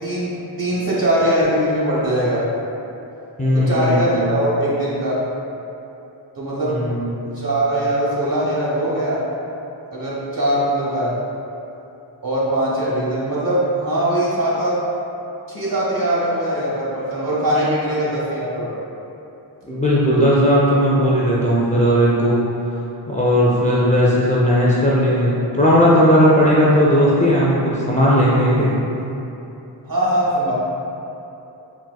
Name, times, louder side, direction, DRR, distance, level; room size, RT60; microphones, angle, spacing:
voice 1, 0.0-2.4 3.5-5.2 6.4-6.8 7.3-9.2 9.9-11.1 12.2-14.8 15.5-18.8 29.9-30.5, right 1 dB, 50° right, -7 dB, 1.0 m, -21 dB
voice 2, 3.4-4.2 6.7-7.1 17.6-17.8 19.7-22.5 23.1-28.8, equal, 20° left, -7 dB, 0.3 m, -16 dB
4.0 x 2.5 x 2.2 m, 2.9 s
wide cardioid pair, 70°, 45 cm